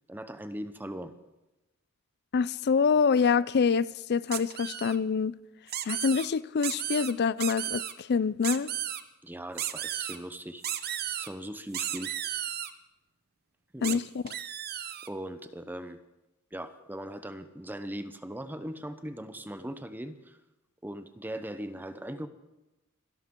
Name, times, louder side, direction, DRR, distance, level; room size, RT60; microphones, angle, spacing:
voice 1, 0.1-1.1 9.2-12.1 13.7-14.0 15.0-16.0 16.5-20.4 20.8-22.3, right 1 dB, 10° right, 0.7 m, -39 dB
voice 2, 2.3-5.4 5.8-8.7 13.8-14.3, left 5 dB, 50° left, 0.4 m, -26 dB
sound 1, 4.3-5.0 5.7-6.3 6.6-7.1 7.4-7.9 8.4-9.0 9.6-10.2 10.6-11.3 11.7-12.7 13.8-14.0 14.3-15.1, right 11 dB, 50° right, 0.8 m, -34 dB
25.5 x 12.0 x 3.8 m
head